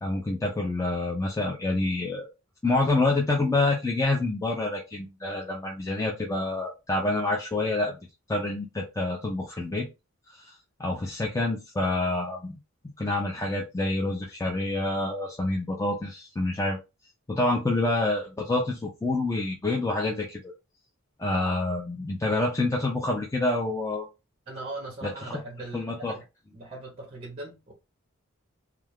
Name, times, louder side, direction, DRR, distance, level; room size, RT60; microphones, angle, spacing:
voice 1, 0.0-2.3 2.6-8.0 8.3-9.9 10.3-12.6 13.0-16.8 17.3-20.5 21.2-24.1 25.0-25.4 25.7-26.1, left 2 dB, 15° left, 0.4 m, -27 dB
voice 2, 24.5-26.2 26.5-27.7, right 2 dB, 30° right, 0.7 m, -39 dB
2.4 x 2.3 x 3.3 m
head